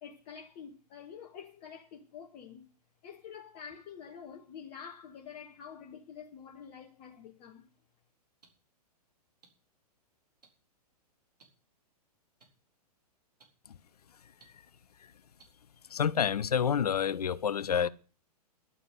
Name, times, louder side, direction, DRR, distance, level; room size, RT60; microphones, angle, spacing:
voice 1, 0.0-2.7 3.0-7.7, left 7 dB, 35° left, 2.1 m, -47 dB
sound 1, 7.4-7.5 8.4-8.5 9.4-9.5 10.4-10.5 11.4-11.5 12.4-12.5 13.4-13.5 14.4-14.5 15.4-15.5, right 4 dB, 75° right, 4.3 m, -58 dB
voice 2, 15.9-17.9, left 7 dB, 70° left, 0.9 m, -28 dB
11.5 x 9.1 x 8.2 m
figure-of-eight pair, 110°, 21 cm